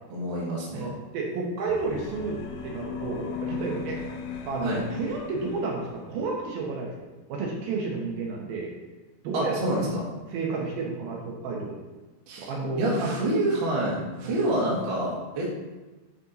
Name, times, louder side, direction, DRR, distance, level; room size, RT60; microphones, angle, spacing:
voice 1, 0.1-0.9 4.6-4.8 9.3-10.1 12.3-12.5 12.8-15.5, right 1 dB, 45° right, -4 dB, 1.7 m, -27 dB
voice 2, 0.7-4.0 4.5-8.7 9.2-9.9 10.3-11.8 12.4-13.2 14.2-14.4, right 3 dB, 70° right, -1 dB, 2.8 m, -31 dB
sound 1, 1.6-6.2, left 5 dB, 80° left, 2.7 m, -37 dB
9.6 x 4.4 x 4.1 m, 1.2 s
omnidirectional pair, 4.7 m